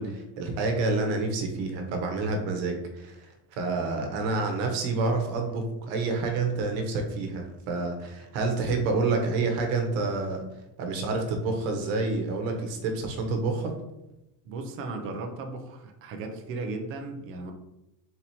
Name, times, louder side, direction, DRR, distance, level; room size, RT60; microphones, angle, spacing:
voice 1, 0.0-10.4 10.8-13.7, right 3 dB, 80° right, 4 dB, 1.1 m, -28 dB
voice 2, 14.4-17.5, right 3 dB, 30° right, 4 dB, 0.5 m, -36 dB
4.1 x 3.0 x 4.2 m, 0.92 s
cardioid pair, 175°, 44 cm